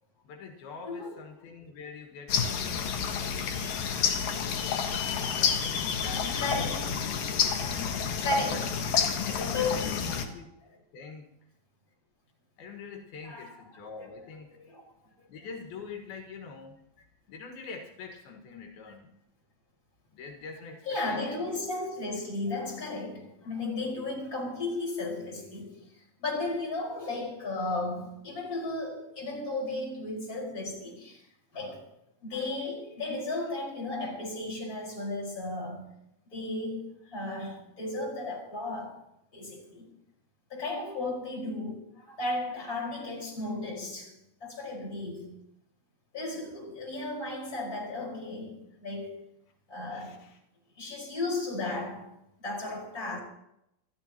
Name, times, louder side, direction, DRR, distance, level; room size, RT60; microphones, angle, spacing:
voice 1, 0.2-7.4 8.5-8.7 9.2-10.5 10.9-11.3 12.6-14.6 15.3-16.8 17.3-19.1 20.1-21.5 49.9-50.4, left 4 dB, 85° left, 3.6 m, -45 dB
voice 2, 0.8-1.2 5.0-5.4 6.4-7.1 7.6-8.7 9.5-10.3 10.7-10.8 13.2-13.5 14.5-14.8 20.9-25.9 26.2-31.3 31.5-31.9 32.2-35.9 36.3-39.0 39.3-39.9 40.5-44.1 44.4-45.4 46.1-49.2 49.7-50.2 50.8-52.1 52.4-53.2, left 2 dB, 25° left, 5.2 m, -35 dB
sound 1, 2.3-10.3, left 7 dB, 70° left, 3.0 m, -29 dB
27.5 x 13.5 x 3.0 m
omnidirectional pair, 4.2 m